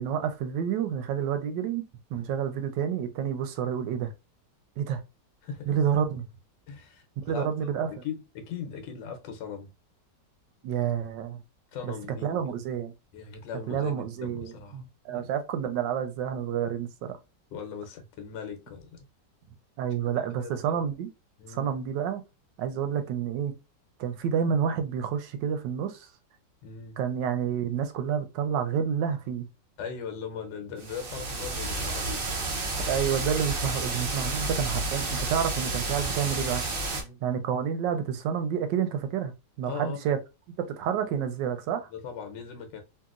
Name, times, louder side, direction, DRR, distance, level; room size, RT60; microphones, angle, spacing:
voice 1, 0.0-1.8 2.1-4.1 4.8-5.0 5.7-6.3 7.3-7.9 10.6-11.4 11.8-11.9 12.2-12.9 13.7-17.1 19.8-21.1 21.5-22.2 22.6-23.5 24.0-26.1 27.0-29.5 32.7-36.6 37.2-40.2 40.7-41.9, right 8 dB, 85° right, 1.3 m, -29 dB
voice 2, 6.7-9.7 11.7-12.6 13.1-15.3 17.5-19.1 20.2-20.8 21.4-21.7 26.6-27.0 29.8-32.4 36.9-37.2 39.7-40.0 41.9-42.8, left 6 dB, 85° left, 1.4 m, -40 dB
sound 1, 30.8-37.0, right 2 dB, 65° right, 0.5 m, -31 dB
2.9 x 2.8 x 2.4 m
omnidirectional pair, 1.9 m